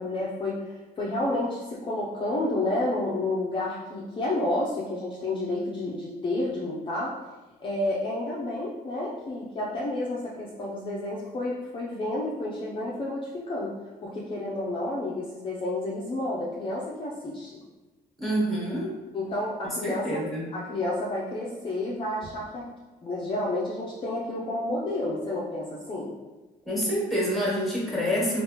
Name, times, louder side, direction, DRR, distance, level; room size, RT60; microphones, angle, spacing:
voice 1, 0.0-7.1 7.6-13.7 14.0-17.6 19.1-20.2 20.5-22.6 23.0-26.1, left 2 dB, 30° left, -5 dB, 0.5 m, -30 dB
voice 2, 18.2-18.9 19.6-20.5 26.6-28.4, equal, ahead, -5 dB, 1.3 m, -27 dB
3.3 x 2.4 x 2.9 m, 1.2 s
cardioid pair, 110°, 17 cm